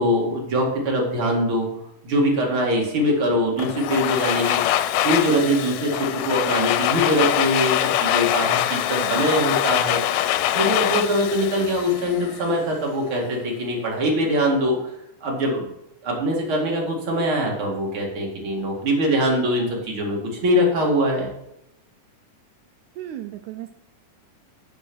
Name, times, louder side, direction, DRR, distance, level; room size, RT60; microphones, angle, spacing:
voice 1, 0.0-1.7 2.0-4.6 5.0-14.8 15.2-15.7 16.0-21.3, equal, 40° right, -1 dB, 2.6 m, -23 dB
Domestic sounds home sounds, 3.6-12.5, left 13 dB, 80° left, 2.1 m, -23 dB
voice 2, 8.7-9.3 23.0-23.7, right 13 dB, 80° right, 7 dB, 1.7 m, -36 dB
9.8 x 5.1 x 6.1 m, 0.81 s
omnidirectional pair, 3.9 m